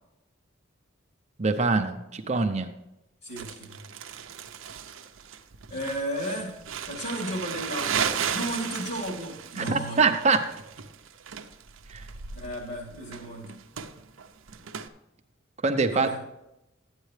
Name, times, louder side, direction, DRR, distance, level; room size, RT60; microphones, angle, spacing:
voice 1, 1.4-2.7 9.6-10.4 11.9-12.0 15.6-16.1, right 4 dB, 35° right, 6 dB, 0.6 m, -24 dB
voice 2, 3.2-3.9 5.7-6.6 6.8-8.0 8.3-10.2 12.3-13.5 15.9-16.2, equal, 55° left, -2 dB, 3.4 m, -34 dB
Crumpling crinkling, 3.4-14.9, right 7 dB, 85° right, 0.7 m, -35 dB
12.0 x 9.0 x 3.3 m, 0.90 s
head